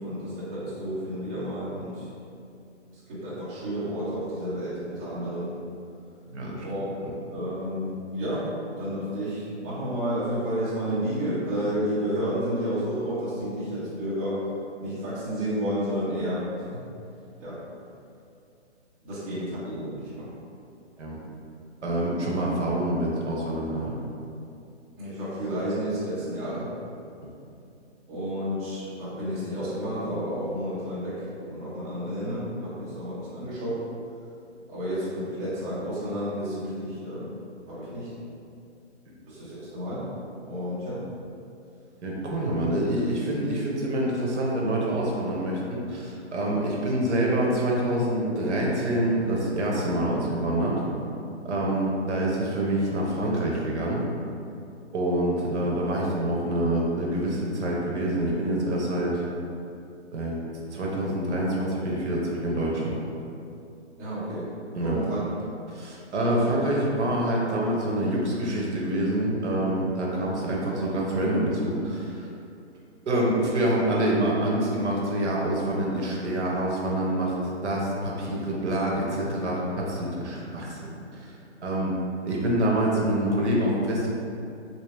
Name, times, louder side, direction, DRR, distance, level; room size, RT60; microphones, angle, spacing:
voice 1, 0.0-2.0 3.1-5.5 6.6-6.9 7.3-8.5 8.8-14.4 14.8-16.8 17.4-17.6 19.0-20.3 25.0-26.7 28.1-31.2 31.5-33.8 34.7-37.3 37.7-38.1 39.3-40.1 40.4-41.1 64.0-65.2, equal, 15° right, -12 dB, 1.0 m, -31 dB
voice 2, 6.3-6.6 21.0-21.2 21.8-24.0 42.0-50.8 51.4-54.0 54.9-59.2 60.1-60.4 60.7-63.0 64.7-65.0 65.7-72.3 73.1-77.3 77.6-81.3 81.6-82.0 82.3-84.1, right 1 dB, 70° right, -3 dB, 0.9 m, -26 dB
3.3 x 2.8 x 3.3 m, 2.6 s
hypercardioid pair, 150°, 36 cm